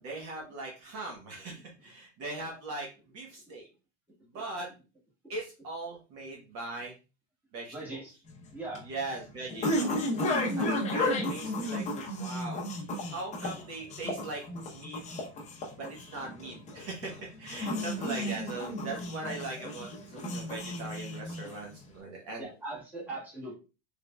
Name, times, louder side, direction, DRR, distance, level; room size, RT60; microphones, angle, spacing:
voice 1, 0.0-2.9 3.1-3.7 4.3-4.7 5.3-6.9 7.5-7.7 8.9-9.9 10.6-11.8 12.1-12.7 13.1-14.4 14.7-15.0 15.8-22.5, right 2 dB, 40° right, -1 dB, 1.0 m, -40 dB
voice 2, 7.7-8.1 8.5-8.8 22.4-23.5, right 2 dB, 5° right, -6 dB, 1.4 m, -40 dB
sound 1, 8.3-21.8, left 1 dB, 20° left, 0.7 m, -33 dB
3.6 x 3.4 x 2.2 m, 0.31 s
supercardioid pair, 150°, 36 cm